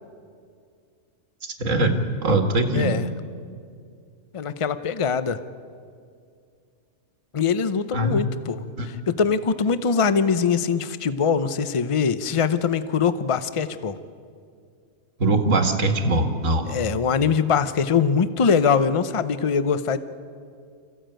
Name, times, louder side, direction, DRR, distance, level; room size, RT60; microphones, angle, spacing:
voice 1, 1.6-2.0 2.2-2.9 7.9-8.2 8.8-8.9 15.2-16.7, right 2 dB, 80° right, 6 dB, 2.0 m, -21 dB
voice 2, 2.7-3.1 4.3-5.4 7.3-8.6 9.1-14.0 16.7-20.0, left 6 dB, 30° left, 13 dB, 0.7 m, -22 dB
25.0 x 15.0 x 9.0 m, 2.2 s
omnidirectional pair, 1.3 m